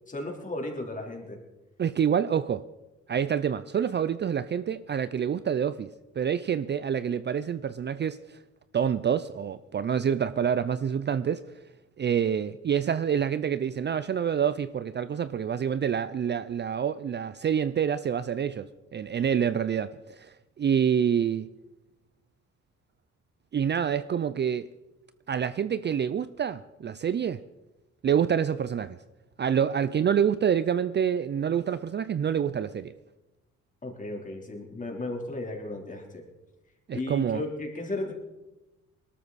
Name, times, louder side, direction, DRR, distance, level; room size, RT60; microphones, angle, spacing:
voice 1, 0.1-1.4 33.8-36.2 36.9-38.1, left 2 dB, 25° left, 3.7 m, -35 dB
voice 2, 1.8-2.7 3.1-5.9 6.2-8.4 8.7-11.4 12.0-18.7 18.9-21.5 23.5-24.7 25.3-27.4 28.0-29.0 29.4-32.9 36.9-37.4, right 8 dB, 35° right, 0.5 m, -27 dB
20.0 x 13.0 x 4.2 m
cardioid pair, 90°, 30 cm